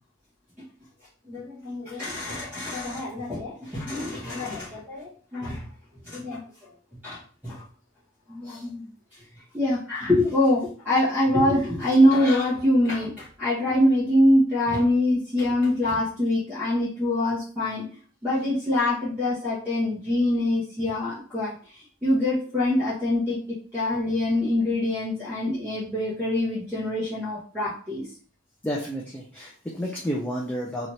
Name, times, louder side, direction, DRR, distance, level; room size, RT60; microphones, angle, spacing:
voice 1, 1.3-5.6 6.1-6.4 7.0-7.6 8.3-8.8 9.5-17.8 18.2-21.5 22.0-23.4 23.7-28.0, left 1 dB, 10° right, -10 dB, 0.8 m, -24 dB
voice 2, 28.6-30.9, equal, 5° left, -4 dB, 0.3 m, -31 dB
2.8 x 2.4 x 3.0 m, 0.43 s
head